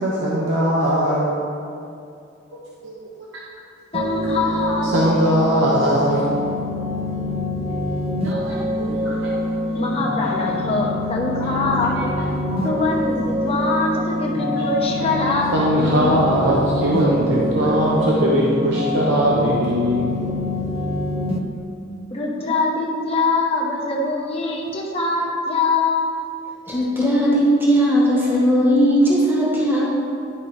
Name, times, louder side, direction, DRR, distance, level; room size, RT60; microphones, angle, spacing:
voice 1, 0.0-1.3 2.5-3.3 4.9-6.3 8.2-9.1 10.2-10.3 11.5-11.9 12.5-12.6 14.6-15.1 15.5-20.3, right 1 dB, 80° right, -5 dB, 1.0 m, -21 dB
voice 2, 3.9-5.1 9.7-12.1 12.6-16.2 22.1-26.1, left 3 dB, 30° left, -2 dB, 1.1 m, -23 dB
sound 1, 3.9-21.4, left 1 dB, 30° right, 0.5 m, -25 dB
voice 3, 26.7-29.8, equal, 10° right, -5 dB, 1.4 m, -17 dB
11.0 x 5.1 x 3.3 m, 2.5 s
head